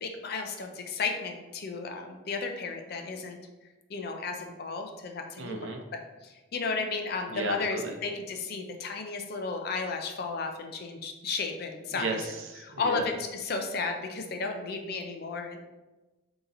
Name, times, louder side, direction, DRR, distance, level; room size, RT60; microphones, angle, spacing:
voice 1, 0.0-3.4 3.9-12.2 12.6-15.6, left 4 dB, 50° left, 4 dB, 0.5 m, -34 dB
voice 2, 5.4-5.8 7.3-8.0 11.9-13.0, right 3 dB, 75° right, 3 dB, 0.6 m, -34 dB
3.8 x 2.9 x 4.0 m, 1.1 s
head